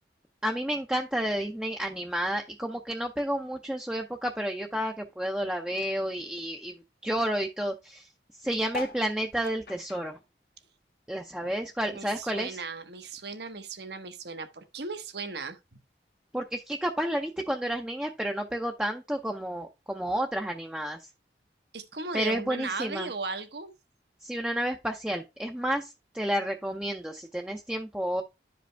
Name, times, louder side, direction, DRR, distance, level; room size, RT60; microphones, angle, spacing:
voice 1, 0.4-8.1 8.4-10.2 11.1-12.6 16.3-21.0 22.1-23.1 24.2-28.2, equal, 5° right, 0.6 m, -31 dB
sound 1, 8.7-11.4 11.8-13.3 13.8-13.9 14.0-14.1 14.3-14.7 15.5-15.6, left 3 dB, 55° left, 1.1 m, -43 dB
voice 2, 11.9-15.6 21.7-23.7, right 4 dB, 70° right, 1.2 m, -37 dB
11.0 x 5.1 x 3.4 m
head